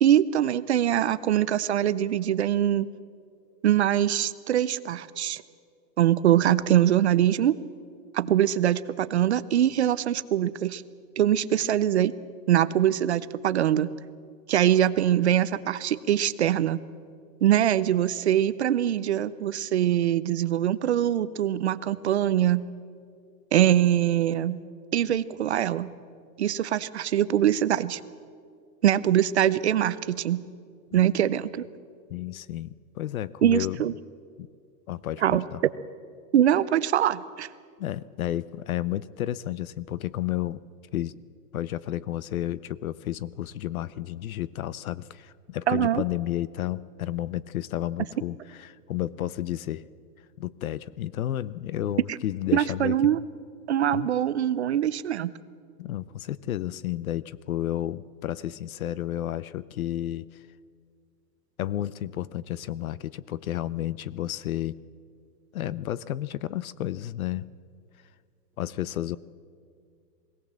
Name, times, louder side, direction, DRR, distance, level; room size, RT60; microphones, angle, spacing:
voice 1, 0.0-2.9 3.6-5.4 6.0-7.6 8.1-10.8 11.2-12.1 12.5-13.9 14.5-16.8 17.4-22.6 23.5-24.6 24.9-25.9 26.4-28.0 28.8-30.4 30.9-31.7 33.4-33.9 35.2-35.4 36.3-37.5 45.7-46.0 52.1-52.2 52.5-53.2 53.7-55.3, right 11 dB, 45° right, 16 dB, 0.5 m, -23 dB
voice 2, 32.1-33.8 34.4-34.5 34.9-35.6 37.8-40.6 40.9-41.1 41.5-49.8 50.4-53.1 53.9-54.1 55.8-60.4 61.6-64.7 65.5-67.5 68.6-69.2, left 13 dB, 60° left, 20 dB, 0.6 m, -32 dB
21.5 x 17.0 x 7.4 m, 2.2 s
supercardioid pair, 180°, 48 cm